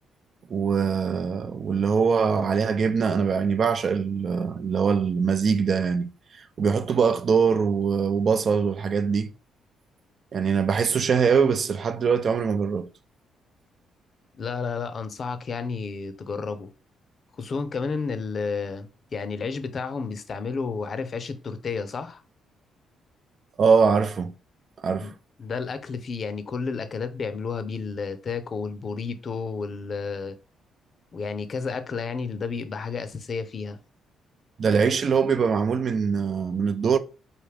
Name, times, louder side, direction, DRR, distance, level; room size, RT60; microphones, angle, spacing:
voice 1, 0.5-6.1 6.6-9.3 10.3-12.9 23.6-24.3 24.8-25.1 34.6-37.0, right 6 dB, 50° right, 0.5 m, -22 dB
voice 2, 14.4-16.7 17.4-22.2 25.0-25.1 25.4-30.3 31.1-33.8, left 5 dB, 45° left, 0.6 m, -31 dB
5.0 x 2.6 x 3.3 m
cardioid pair, 90°, 0 cm